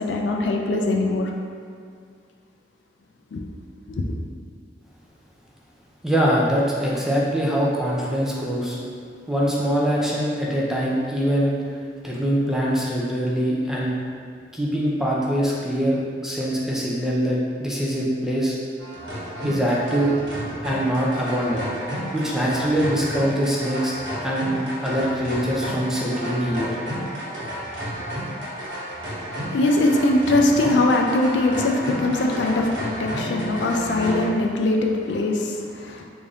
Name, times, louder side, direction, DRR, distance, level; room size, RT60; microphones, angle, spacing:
voice 1, 0.0-1.3 3.3-3.4 3.9-4.2 29.3-36.1, left 2 dB, 70° left, 1 dB, 0.4 m, -22 dB
voice 2, 6.0-8.8 9.3-11.6 12.0-13.9 14.5-18.6 19.4-20.2 20.6-21.6 22.1-23.9 24.2-26.7, equal, ahead, -5 dB, 0.4 m, -23 dB
sound 1, 18.8-34.3, equal, 85° right, 1.1 m, -31 dB
3.4 x 2.6 x 3.5 m, 2.1 s
head